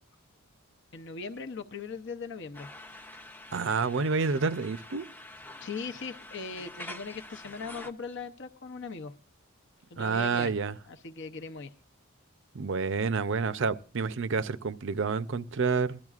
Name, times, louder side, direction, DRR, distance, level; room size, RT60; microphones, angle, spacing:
voice 1, 0.9-2.7 5.6-9.1 9.9-10.6 10.9-11.7, left 4 dB, 60° left, 0.7 m, -39 dB
sound 1, 2.5-7.9, left 1 dB, 10° left, 0.5 m, -46 dB
voice 2, 3.5-5.0 10.0-10.8 12.5-16.0, right 5 dB, 60° right, 0.5 m, -29 dB
20.0 x 12.0 x 2.4 m
head